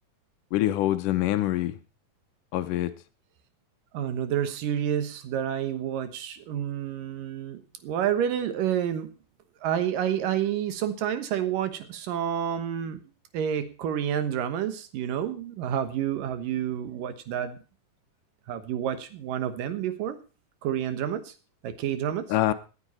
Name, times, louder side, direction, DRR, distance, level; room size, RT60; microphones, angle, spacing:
voice 1, 0.5-1.8 2.5-2.9 22.3-22.5, left 14 dB, 75° left, 2.3 m, -25 dB
voice 2, 3.9-9.1 9.6-13.0 13.3-17.6 18.5-20.2 20.6-21.3 21.6-22.2, right 9 dB, 80° right, 2.9 m, -29 dB
18.0 x 10.0 x 4.3 m
omnidirectional pair, 3.9 m